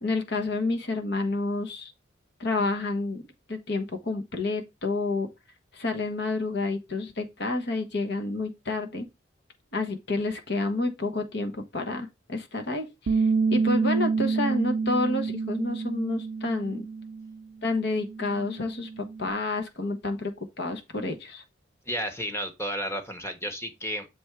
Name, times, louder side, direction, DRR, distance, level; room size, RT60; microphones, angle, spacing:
voice 1, 0.0-1.9 2.4-3.2 3.5-5.3 5.7-9.1 9.7-16.9 17.6-21.4, left 2 dB, 60° left, 1.2 m, -29 dB
Bass guitar, 13.1-17.4 17.7-19.3, right 4 dB, 70° right, 0.5 m, -28 dB
voice 2, 21.9-24.1, equal, 15° left, 1.1 m, -32 dB
7.1 x 3.5 x 4.6 m
head